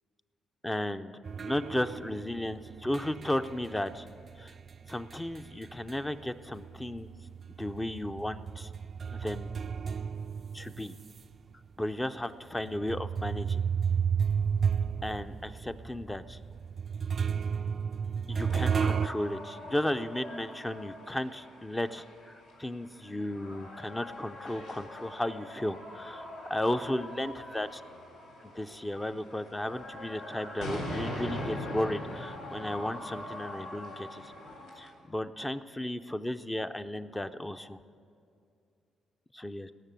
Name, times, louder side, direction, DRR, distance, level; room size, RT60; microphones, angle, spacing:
voice 1, 0.6-4.1 4.4-4.5 4.9-7.1 7.6-8.7 9.1-9.5 10.5-10.9 11.8-13.6 15.0-16.4 18.3-22.3 22.6-26.2 26.5-27.7 28.4-34.3 34.8-37.8 39.3-39.7, left 1 dB, 10° left, 9 dB, 0.5 m, -34 dB
sound 1, 1.2-6.2 6.5-11.2 11.8-11.9 12.7-19.1, right 7 dB, 45° right, 0.3 m, -32 dB
sound 2, 18.3-34.9, left 1 dB, 90° left, 3.9 m, -42 dB
18.5 x 6.6 x 9.1 m, 2.5 s
cardioid pair, 90°, 0 cm